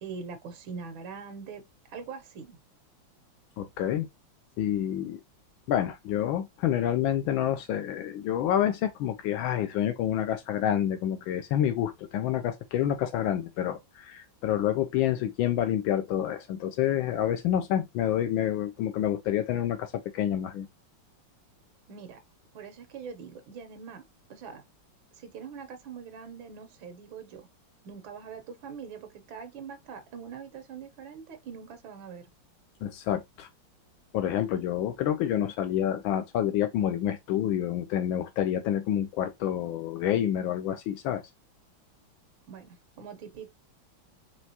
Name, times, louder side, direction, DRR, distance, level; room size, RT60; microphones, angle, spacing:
voice 1, 0.0-1.6 1.9-2.6 21.9-22.2 22.5-24.0 24.3-24.6 25.2-27.5 27.8-32.2 42.5-43.5, right 6 dB, 90° right, 1.7 m, -43 dB
voice 2, 3.6-4.1 4.6-5.2 5.7-20.7 32.8-33.5 34.1-41.2, left 10 dB, 85° left, 1.4 m, -28 dB
4.8 x 3.1 x 2.8 m
omnidirectional pair, 2.1 m